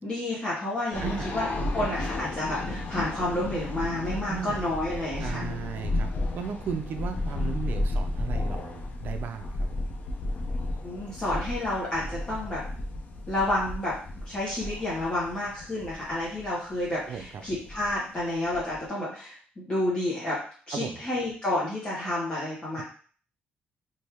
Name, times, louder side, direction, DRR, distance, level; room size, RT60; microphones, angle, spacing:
voice 1, 0.0-5.5 10.8-12.6 13.3-13.9 14.3-20.4 20.7-22.8, left 1 dB, 25° left, -7 dB, 1.1 m, -30 dB
sound 1, 0.9-18.8, left 2 dB, 45° left, 0.5 m, -33 dB
voice 2, 1.0-1.3 4.1-4.6 5.2-6.1 6.3-9.9 17.1-17.3 20.8-21.0, right 6 dB, 55° right, 6 dB, 0.4 m, -35 dB
3.4 x 2.6 x 2.9 m, 0.43 s
cardioid pair, 130°, 4 cm